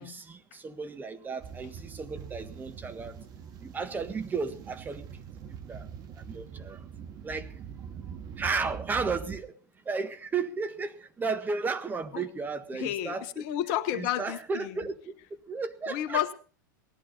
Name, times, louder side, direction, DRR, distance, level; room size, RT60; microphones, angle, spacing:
voice 1, 0.0-3.2 3.6-5.0 5.7-5.9 6.2-6.8 7.2-7.5 8.4-9.5 9.8-13.4 13.9-15.1 15.5-16.3, right 4 dB, 15° right, 1.6 m, -34 dB
sound 1, 1.4-9.4, right 7 dB, 35° right, 1.9 m, -43 dB
voice 2, 12.7-14.8 15.9-16.3, left 12 dB, 50° left, 1.2 m, -31 dB
18.5 x 11.5 x 5.4 m
hypercardioid pair, 95°, 11 cm